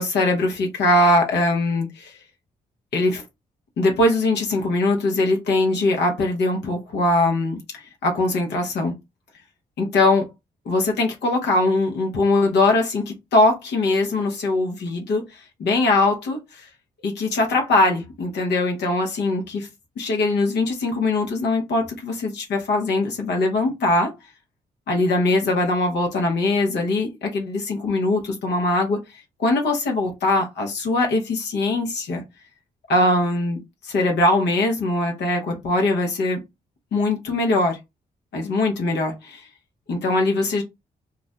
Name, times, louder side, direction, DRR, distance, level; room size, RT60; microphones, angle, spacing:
voice 1, 0.0-2.1 2.9-3.2 3.8-8.9 9.8-10.3 10.7-16.7 17.0-19.7 20.0-24.1 24.9-32.2 32.9-36.4 36.9-37.8 38.3-39.5 39.9-40.6, left 2 dB, 80° left, 0.8 m, -21 dB
2.5 x 2.1 x 3.7 m
supercardioid pair, 50°, 17 cm